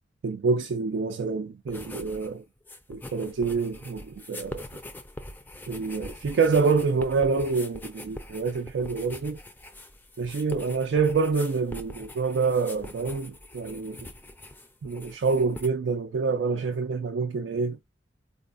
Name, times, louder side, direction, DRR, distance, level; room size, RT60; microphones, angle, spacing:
voice 1, 0.2-2.4 2.9-4.6 5.7-9.4 10.2-14.0 14.8-17.8, right 4 dB, 70° right, 0.3 m, -27 dB
sound 1, 1.7-2.3 2.6-15.7, left 1 dB, 10° left, 0.3 m, -43 dB
4.0 x 2.1 x 2.5 m
head